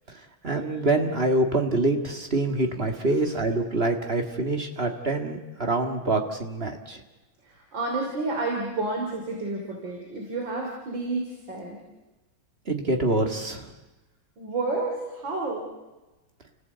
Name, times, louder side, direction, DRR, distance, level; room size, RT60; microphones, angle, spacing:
voice 1, 0.4-7.0 12.7-13.7, right 2 dB, 30° right, 4 dB, 2.1 m, -25 dB
voice 2, 7.4-11.8 14.4-15.7, right 2 dB, 65° right, 1 dB, 3.8 m, -30 dB
29.5 x 16.5 x 8.2 m, 1.1 s
omnidirectional pair, 2.2 m